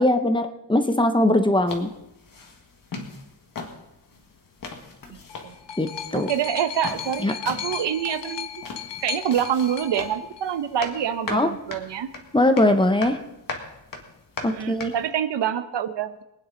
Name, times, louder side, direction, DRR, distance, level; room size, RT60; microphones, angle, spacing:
voice 1, 0.0-1.9 5.8-6.3 7.2-7.3 11.3-11.5 12.3-13.2 14.4-14.9, left 1 dB, 10° left, 7 dB, 0.7 m, -20 dB
sound 1, 1.7-15.1, left 3 dB, 50° left, 1.7 m, -40 dB
sound 2, 5.0-11.0 11.9-12.0, left 9 dB, 85° left, 0.9 m, -36 dB
voice 2, 6.1-8.6 9.0-12.1 14.4-16.2, right 9 dB, 85° right, 10 dB, 0.9 m, -26 dB
22.5 x 9.4 x 3.9 m, 0.89 s
wide cardioid pair, 160°, 41 cm